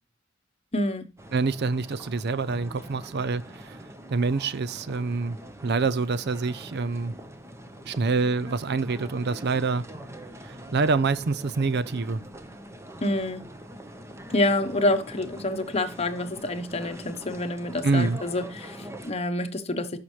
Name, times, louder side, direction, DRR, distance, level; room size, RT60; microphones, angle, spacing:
voice 1, 0.7-1.1 13.0-13.4 14.3-20.0, left 1 dB, 30° left, 1.0 m, -27 dB
sound 1, 1.2-19.1, equal, 15° right, 1.0 m, -43 dB
voice 2, 1.3-3.8 4.1-7.1 7.8-9.8 10.4-12.2 17.8-18.2, right 4 dB, 55° right, 0.5 m, -26 dB
12.0 x 5.8 x 3.2 m
head